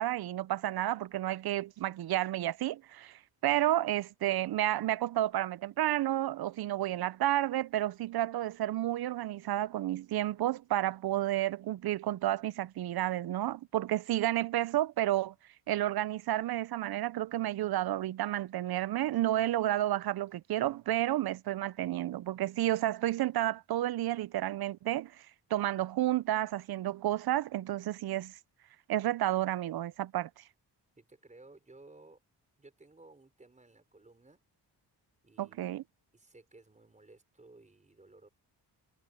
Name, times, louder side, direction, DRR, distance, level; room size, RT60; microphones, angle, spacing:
voice 1, 0.0-15.3 15.7-25.1 25.5-28.3 28.9-30.4 35.4-35.8, right 14 dB, 60° right, 0.5 m, -31 dB
voice 2, 31.0-32.2 32.6-34.4 35.2-35.7 36.1-38.3, right 2 dB, 15° right, 5.2 m, -57 dB
wide cardioid pair, 160°, 42 cm